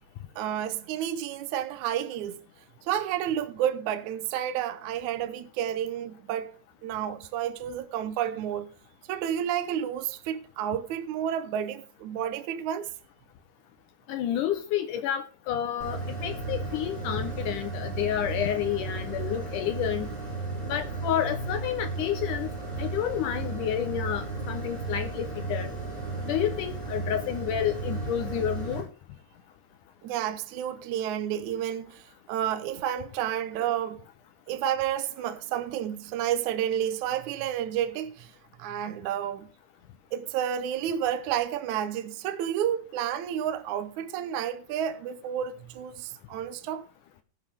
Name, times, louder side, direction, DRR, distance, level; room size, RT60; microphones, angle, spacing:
voice 1, 0.4-2.4 2.8-6.6 6.8-8.7 9.1-12.9 30.0-34.0 34.5-38.3 38.6-39.5 40.1-46.8, right 10 dB, 75° right, 1.8 m, -30 dB
voice 2, 14.1-20.1 20.7-22.5 22.8-25.7 26.2-28.9, left 10 dB, 80° left, 1.9 m, -30 dB
sound 1, 15.8-28.8, right 3 dB, 10° right, 6.8 m, -34 dB
19.0 x 7.6 x 3.4 m
omnidirectional pair, 4.6 m